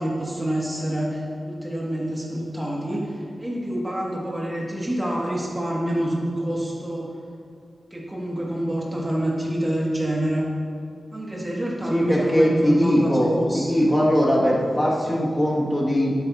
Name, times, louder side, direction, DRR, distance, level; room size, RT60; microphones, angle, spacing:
voice 1, 0.0-7.1 7.9-10.5 11.1-13.9, right 1 dB, 15° right, -4 dB, 2.0 m, -27 dB
voice 2, 11.9-16.1, equal, 20° left, -5 dB, 2.0 m, -20 dB
11.0 x 9.2 x 2.8 m, 2.2 s
wide cardioid pair, 100°, 0 cm